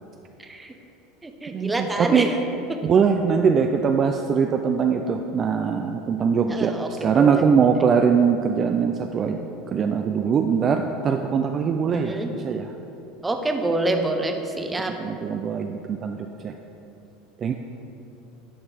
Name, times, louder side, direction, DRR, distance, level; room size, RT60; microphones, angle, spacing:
voice 1, 0.4-0.7 1.2-2.3 2.7-2.8 6.5-7.5 11.9-12.3 13.2-14.9, right 2 dB, 15° right, 5 dB, 0.7 m, -27 dB
voice 2, 1.5-2.3 2.8-6.7 7.0-9.4 9.7-12.7 15.0-16.2 16.4-16.5 17.4-17.5, right 6 dB, 35° right, 4 dB, 0.3 m, -21 dB
11.0 x 4.3 x 3.4 m, 2.9 s
hypercardioid pair, 100°, 0 cm